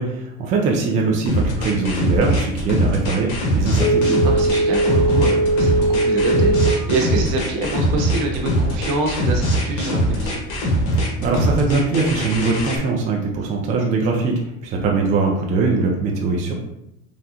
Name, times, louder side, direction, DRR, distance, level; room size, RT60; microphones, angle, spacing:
voice 1, 0.0-4.2 11.2-14.3 14.6-16.5, right 4 dB, 20° right, 0 dB, 0.3 m, -21 dB
sound 1, 1.3-12.8, equal, 50° left, 1.1 m, -21 dB
Telephone, 3.7-6.9 7.3-7.4, right 2 dB, 10° left, 1.0 m, -19 dB
voice 2, 4.2-10.4 14.1-14.2, right 2 dB, 55° right, 1 dB, 0.9 m, -25 dB
3.7 x 2.0 x 2.8 m, 0.82 s
hypercardioid pair, 100°, 39 cm